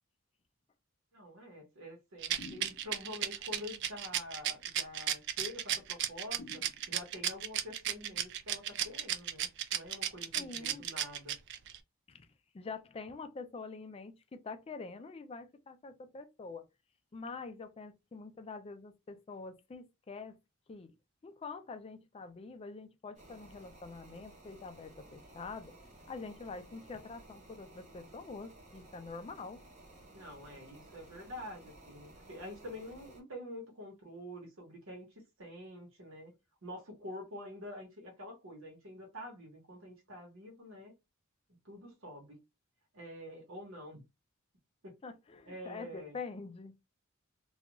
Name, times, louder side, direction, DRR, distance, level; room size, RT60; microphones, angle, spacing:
voice 1, 1.1-11.3 30.1-36.3 36.6-40.9 41.6-42.4 42.9-44.0 44.8-44.9 45.4-46.2, left 1 dB, 80° right, 1.0 m, -47 dB
Rattle, 2.2-11.8, right 10 dB, 60° right, 0.4 m, -34 dB
sound 1, 2.4-3.2 6.4-7.3, left 2 dB, 85° left, 0.6 m, -51 dB
voice 2, 10.3-10.9 12.1-12.3 12.5-16.7 17.1-20.4 20.7-20.9 21.2-25.7 26.1-29.6 45.0-46.7, left 4 dB, 30° left, 0.3 m, -45 dB
sound 2, 23.2-33.2, right 1 dB, 35° right, 0.8 m, -56 dB
2.4 x 2.3 x 2.9 m
head